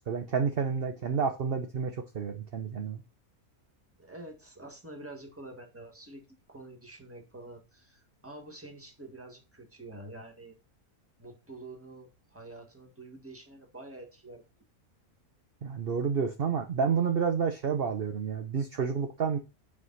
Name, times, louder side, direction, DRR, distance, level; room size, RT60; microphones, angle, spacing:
voice 1, 0.0-3.0 15.6-19.4, right 6 dB, 50° right, 0.8 m, -30 dB
voice 2, 4.0-10.6 11.2-14.4, right 2 dB, 10° right, 1.5 m, -47 dB
8.5 x 4.8 x 4.0 m
omnidirectional pair, 1.5 m